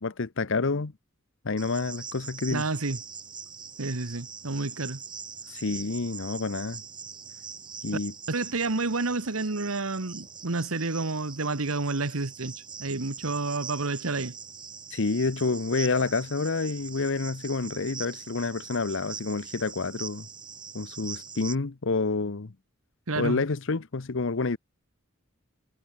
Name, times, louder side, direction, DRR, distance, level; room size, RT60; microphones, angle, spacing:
voice 1, 0.0-0.9 1.4-2.6 5.5-6.8 7.8-8.1 14.9-20.3 20.7-22.5 23.1-24.6, left 3 dB, 65° left, 0.8 m, -28 dB
Cricket, 1.6-21.5, right 6 dB, 20° right, 4.1 m, -42 dB
voice 2, 2.5-3.0 3.8-5.0 8.3-12.5 12.8-14.4 23.1-23.4, right 3 dB, 90° right, 1.4 m, -29 dB
head